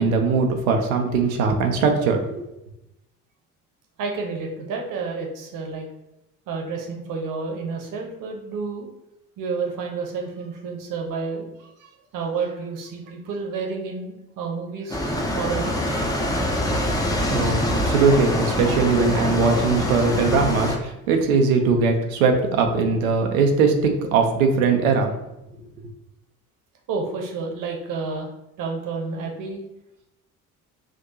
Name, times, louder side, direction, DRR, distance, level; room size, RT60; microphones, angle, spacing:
voice 1, 0.0-2.4 16.7-16.8 17.3-25.1, right 4 dB, 65° right, 4 dB, 0.7 m, -20 dB
voice 2, 4.0-5.9 6.5-8.9 9.4-15.7 16.0-16.4 26.9-28.3 28.6-29.6, right 4 dB, 45° right, 1 dB, 1.0 m, -30 dB
sound 1, 14.9-20.8, left 1 dB, 10° left, 0.7 m, -24 dB
5.9 x 2.6 x 2.7 m, 0.87 s
figure-of-eight pair, 55°, 44 cm